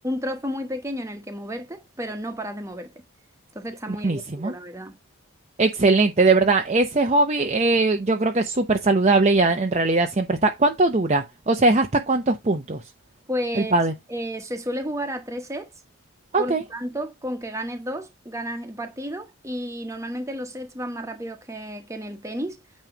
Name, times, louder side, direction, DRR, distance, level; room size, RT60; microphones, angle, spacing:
voice 1, 0.0-2.9 3.5-4.9 13.3-13.7 14.1-15.7 16.4-22.6, equal, 15° right, 1.2 m, -32 dB
voice 2, 4.0-4.5 5.6-12.8 13.6-13.9 16.3-16.6, right 3 dB, 30° right, 0.7 m, -20 dB
9.1 x 3.1 x 5.0 m
head